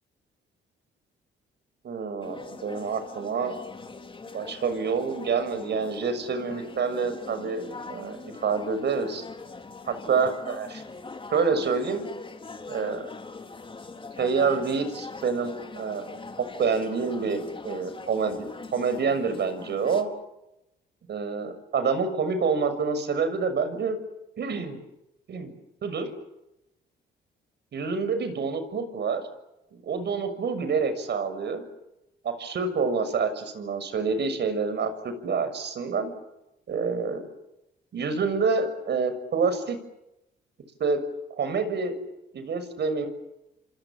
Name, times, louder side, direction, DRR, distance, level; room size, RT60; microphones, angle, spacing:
voice 1, 1.8-3.6 4.3-9.2 10.1-10.8 11.3-12.1 12.7-13.1 14.2-20.1 21.1-24.0 24.4-24.8 25.3-25.5 25.8-26.1 27.7-29.2 29.8-31.7 32.2-36.1 36.7-37.2 37.9-39.8 40.8-41.0 41.4-41.9 42.3-43.1, right 5 dB, 60° right, 10 dB, 6.6 m, -27 dB
sound 1, 2.2-20.0, left 3 dB, 25° left, 4.3 m, -42 dB
29.0 x 26.5 x 7.6 m, 0.91 s
cardioid pair, 90°, 20 cm